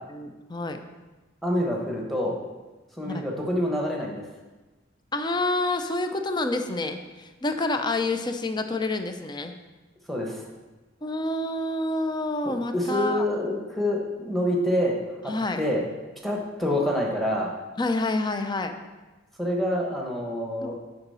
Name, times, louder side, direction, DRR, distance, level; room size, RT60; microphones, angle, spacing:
voice 1, 0.1-0.8 3.0-3.2 5.1-9.5 11.0-13.2 15.3-15.6 17.8-18.8, left 2 dB, 25° left, 7 dB, 0.5 m, -28 dB
voice 2, 1.4-2.4 3.0-4.2 10.1-10.4 12.4-15.0 15.2-15.8 16.2-17.5 19.4-20.7, left 1 dB, ahead, -1 dB, 1.2 m, -27 dB
9.9 x 4.0 x 5.6 m, 1.2 s
head